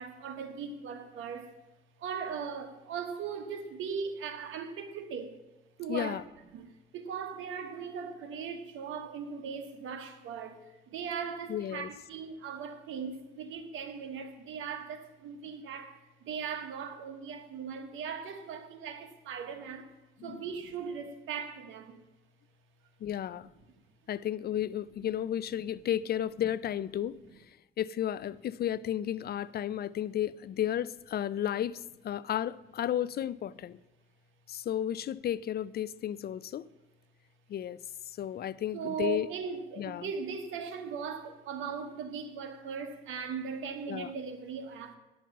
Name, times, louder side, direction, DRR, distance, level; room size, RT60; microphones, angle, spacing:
voice 1, 0.0-1.5 2.0-5.4 5.8-6.2 6.5-6.7 6.9-10.6 10.9-19.9 20.2-22.0 38.7-45.0, right 6 dB, 80° right, 1.4 m, -39 dB
voice 2, 5.9-6.2 11.5-11.9 20.2-20.4 23.0-23.5 24.1-27.2 27.5-33.8 34.5-36.7 37.5-37.8 38.1-39.3 39.8-40.1 43.9-44.1, left 11 dB, 55° left, 0.4 m, -33 dB
10.5 x 6.1 x 7.2 m
cardioid pair, 90°, 20 cm